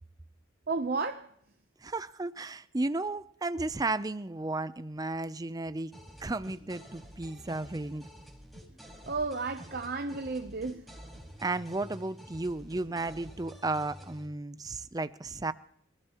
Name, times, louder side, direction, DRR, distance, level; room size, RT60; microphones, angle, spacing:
voice 1, 0.7-1.3 9.1-10.8, right 3 dB, 50° right, 0.8 m, -32 dB
voice 2, 1.8-5.9 6.2-8.0 11.4-15.5, right 2 dB, 20° right, 0.5 m, -34 dB
sound 1, 5.9-14.3, equal, ahead, 4.1 m, -49 dB
27.5 x 16.5 x 3.0 m
head